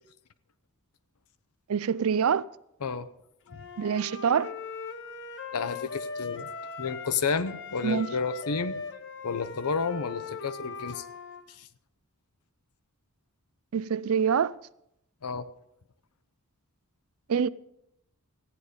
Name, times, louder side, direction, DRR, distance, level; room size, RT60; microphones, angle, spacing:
voice 1, 1.7-2.4 3.8-4.5 7.8-8.1 13.7-14.5 17.3-17.5, right 7 dB, 70° right, 0.4 m, -25 dB
Wind instrument woodwind instrument, 3.5-7.2 7.4-11.4, left 4 dB, 55° left, 0.9 m, -39 dB
voice 2, 5.5-6.5 6.8-8.8 9.2-11.0 11.6-11.7 15.2-15.5, left 5 dB, 85° left, 0.7 m, -31 dB
15.0 x 9.7 x 5.1 m
head